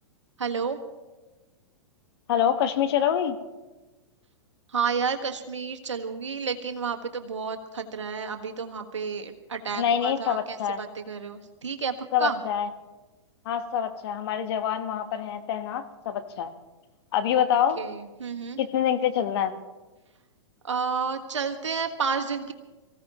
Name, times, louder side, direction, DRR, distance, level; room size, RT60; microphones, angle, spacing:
voice 1, 0.4-0.8 4.7-12.4 17.3-17.5 17.8-18.6 20.6-22.5, right 5 dB, 85° right, 6 dB, 1.5 m, -31 dB
voice 2, 2.3-3.4 9.8-10.8 12.1-12.7 13.4-16.5 17.1-17.8 18.6-19.5, left 9 dB, 60° left, 9 dB, 1.2 m, -25 dB
24.0 x 15.5 x 3.0 m, 1.2 s
hypercardioid pair, 115°, 15 cm